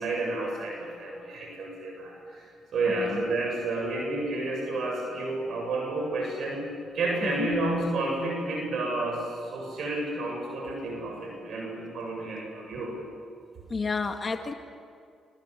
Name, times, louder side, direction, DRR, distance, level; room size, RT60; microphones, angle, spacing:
voice 1, 0.0-6.6 6.9-12.9, right 2 dB, 65° right, 0 dB, 7.9 m, -30 dB
voice 2, 13.7-14.5, left 4 dB, 35° left, 5 dB, 2.1 m, -30 dB
26.0 x 26.0 x 8.5 m, 2.3 s
supercardioid pair, 60°, 0 cm